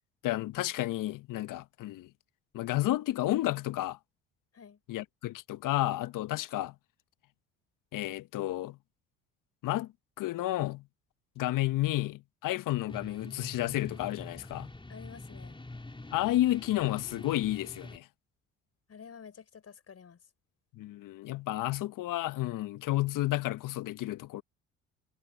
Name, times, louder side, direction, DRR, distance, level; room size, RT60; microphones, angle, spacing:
voice 1, 0.2-2.1 2.5-4.0 4.9-6.7 7.9-8.8 9.6-9.9 10.2-10.8 11.4-14.7 16.1-18.1 20.7-24.4, left 16 dB, 60° left, 1.4 m, -31 dB
sound 1, 12.9-18.0, left 2 dB, 15° left, 4.7 m, -45 dB
voice 2, 14.9-15.6 18.9-20.2, left 7 dB, 40° left, 4.8 m, -50 dB
hypercardioid pair, 60°, 36 cm